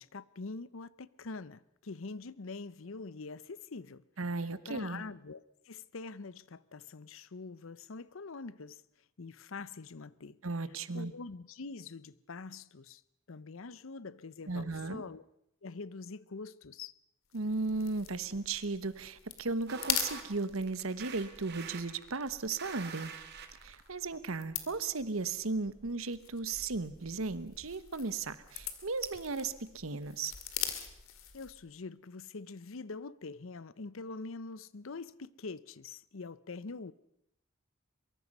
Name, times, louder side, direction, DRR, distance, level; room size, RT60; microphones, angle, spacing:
voice 1, 0.0-4.0 4.7-8.8 9.2-10.4 10.9-13.0 13.3-15.2 15.6-16.9 31.3-36.9, left 3 dB, 70° left, 0.7 m, -44 dB
voice 2, 4.2-5.0 10.4-11.1 14.5-15.0 17.3-23.1 23.6-30.3, right 3 dB, 80° right, 1.2 m, -36 dB
sound 1, 17.3-31.7, left 10 dB, 90° left, 2.3 m, -43 dB
sound 2, 19.7-23.9, right 6 dB, 55° right, 2.3 m, -45 dB
23.5 x 23.0 x 5.4 m
head